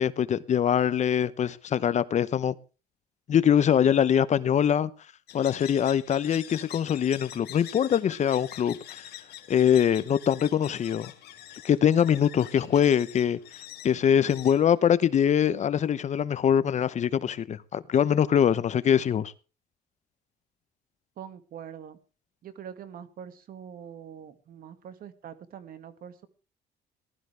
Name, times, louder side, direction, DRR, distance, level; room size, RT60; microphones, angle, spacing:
voice 1, 0.0-2.5 3.3-4.9 5.3-8.8 9.5-11.1 11.6-13.4 13.8-19.3, left 9 dB, 45° left, 0.8 m, -23 dB
sound 1, 5.3-15.5, left 13 dB, 70° left, 1.9 m, -45 dB
voice 2, 21.2-22.0 22.4-26.3, right 8 dB, 60° right, 2.0 m, -44 dB
19.0 x 13.0 x 3.4 m
cardioid pair, 110°, 17 cm